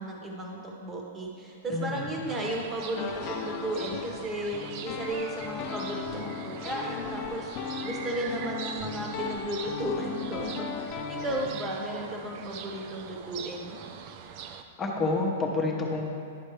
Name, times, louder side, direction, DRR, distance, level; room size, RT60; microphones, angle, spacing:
voice 1, 0.0-7.5 7.8-13.8, right 1 dB, 15° right, -2 dB, 1.3 m, -34 dB
voice 2, 1.7-2.3 14.8-16.0, left 3 dB, 20° left, -1 dB, 1.0 m, -29 dB
sound 1, 2.3-14.6, right 7 dB, 45° right, 0.5 m, -43 dB
sound 2, 3.0-11.5, left 6 dB, 40° left, 0.6 m, -37 dB
11.5 x 4.3 x 3.2 m, 2.4 s
hypercardioid pair, 135°, 0 cm